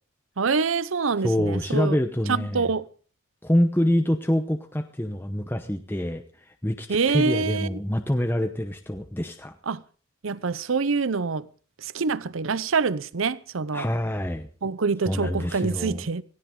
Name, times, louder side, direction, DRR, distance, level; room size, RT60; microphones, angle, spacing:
voice 1, 0.4-2.0 2.3-2.9 6.9-7.8 9.7-9.8 10.2-11.5 11.8-13.9 14.6-16.2, right 4 dB, 75° right, 0.7 m, -25 dB
voice 2, 1.2-2.7 3.4-6.2 6.6-9.5 13.7-14.5 15.0-16.0, left 1 dB, 10° left, 0.8 m, -25 dB
17.5 x 16.5 x 3.8 m
head